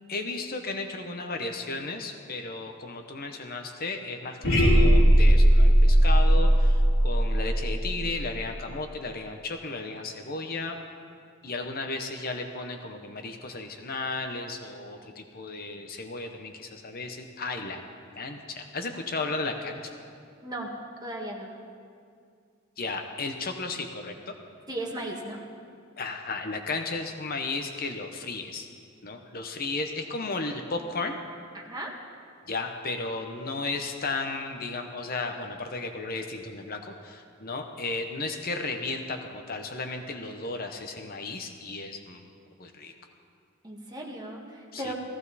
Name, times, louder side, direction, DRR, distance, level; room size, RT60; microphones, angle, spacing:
voice 1, 0.1-10.8 11.4-17.8 18.2-20.0 22.8-24.3 26.0-28.7 29.0-31.2 32.5-42.3 42.6-42.9 44.7-44.9, left 3 dB, 45° left, 5 dB, 0.9 m, -34 dB
sound 1, 4.4-8.5, equal, 80° left, 4.0 m, -19 dB
voice 2, 20.4-20.7 21.0-21.5 24.7-25.4 31.5-31.9 43.6-44.9, right 1 dB, 20° right, -2 dB, 1.8 m, -36 dB
17.5 x 15.5 x 4.1 m, 2.3 s
head